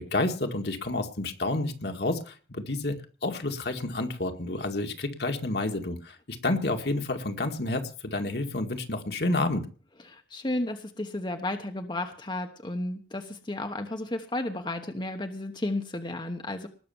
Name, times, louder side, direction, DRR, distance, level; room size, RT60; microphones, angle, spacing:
voice 1, 0.0-9.6, left 2 dB, 65° left, 4 dB, 2.0 m, -30 dB
voice 2, 10.1-16.7, left 1 dB, 25° left, 5 dB, 1.1 m, -33 dB
19.5 x 6.8 x 7.0 m, 0.40 s
head